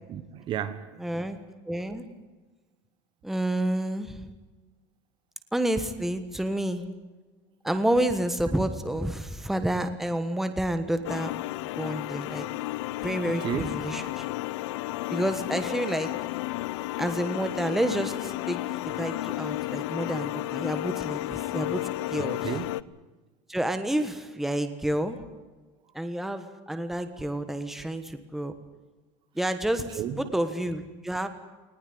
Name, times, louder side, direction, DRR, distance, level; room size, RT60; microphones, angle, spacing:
voice 1, 0.1-1.0 13.4-13.7 22.2-22.7 29.9-30.3, right 9 dB, 35° right, 1.3 m, -33 dB
voice 2, 1.0-1.4 1.7-2.0 3.2-4.2 5.5-6.8 7.6-11.3 11.8-12.5 13.0-14.3 15.1-16.1 17.0-18.6 19.0-22.4 23.5-25.2 25.9-28.5 29.3-29.9 30.3-31.3, right 1 dB, ahead, 1.3 m, -29 dB
sound 1, 11.0-22.8, left 17 dB, 80° left, 0.8 m, -32 dB
20.0 x 19.0 x 9.5 m
cardioid pair, 165°, 15 cm